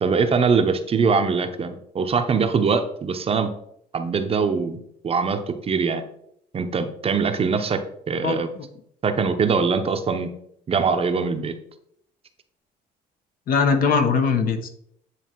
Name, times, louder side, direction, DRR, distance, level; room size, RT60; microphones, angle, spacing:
voice 1, 0.0-3.5 3.9-6.0 6.5-8.5 9.0-10.3 10.7-11.5, right 5 dB, 35° right, 7 dB, 0.8 m, -22 dB
voice 2, 8.2-8.7 13.5-14.7, left 5 dB, 60° left, 7 dB, 1.1 m, -21 dB
9.3 x 3.3 x 4.5 m, 0.71 s
cardioid pair, 110°, 17 cm